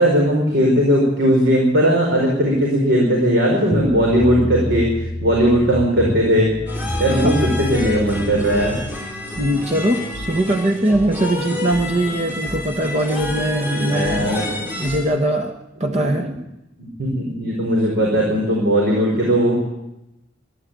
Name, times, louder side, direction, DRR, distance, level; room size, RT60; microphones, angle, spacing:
voice 1, 0.0-4.9 5.2-6.5 7.0-8.8 13.7-14.4 15.8-16.3 17.0-19.5, equal, 60° right, -2 dB, 5.1 m, -18 dB
sound 1, 3.7-9.0, left 1 dB, 15° left, 3.3 m, -27 dB
sound 2, 6.7-15.0, left 2 dB, 10° right, 6.0 m, -29 dB
voice 2, 9.4-15.5 15.8-16.3, right 1 dB, 35° right, 5 dB, 1.3 m, -21 dB
23.5 x 12.0 x 9.2 m, 0.94 s
head